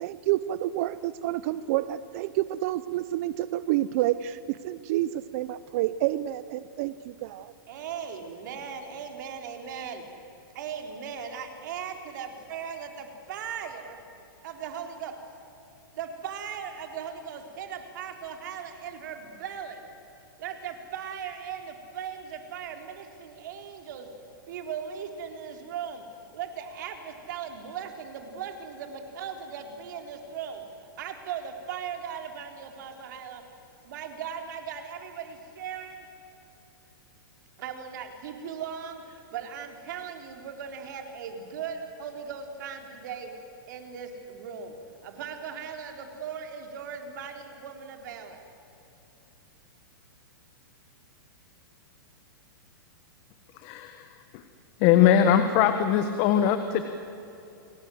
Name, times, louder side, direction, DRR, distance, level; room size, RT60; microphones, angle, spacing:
voice 1, 0.0-7.5, right 14 dB, 40° right, 15 dB, 0.6 m, -29 dB
voice 2, 7.7-10.0 10.5-14.0 14.4-15.1 16.0-19.9 20.4-24.1 24.5-26.0 26.3-30.6 31.0-33.4 33.8-36.0 37.6-43.3 43.7-44.8 45.0-48.4, right 7 dB, 55° right, 4 dB, 3.8 m, -38 dB
voice 3, 53.6-54.0 54.8-56.8, left 9 dB, 35° left, 8 dB, 1.3 m, -21 dB
29.5 x 20.5 x 7.8 m, 2.9 s
hypercardioid pair, 160°, 12 cm